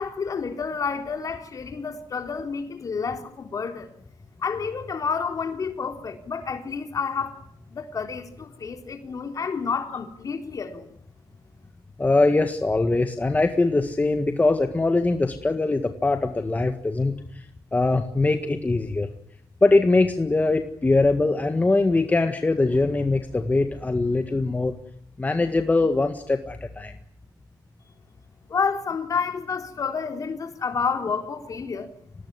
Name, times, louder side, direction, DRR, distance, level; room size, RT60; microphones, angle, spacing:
voice 1, 0.0-3.9 4.4-7.4 7.7-10.9 28.5-31.9, left 5 dB, 45° left, 3.9 m, -29 dB
voice 2, 12.0-17.5 17.7-19.1 19.6-24.8 25.2-26.9, left 2 dB, 20° left, 1.8 m, -22 dB
25.5 x 18.5 x 9.6 m
cardioid pair, 95°, 8 cm